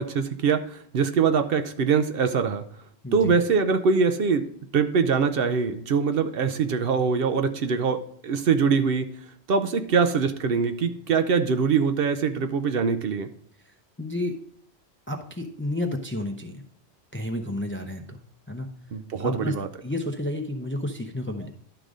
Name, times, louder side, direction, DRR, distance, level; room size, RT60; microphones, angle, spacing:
voice 1, 0.0-2.6 3.1-4.5 4.7-9.1 9.5-13.3 18.9-19.7, right 5 dB, 65° right, 9 dB, 0.8 m, -23 dB
voice 2, 3.0-3.4 14.0-14.4 15.1-16.6 17.1-18.2 18.5-18.7 19.2-19.5 19.8-21.5, left 1 dB, 15° left, 4 dB, 0.5 m, -31 dB
11.5 x 3.9 x 4.8 m, 0.64 s
omnidirectional pair, 1.1 m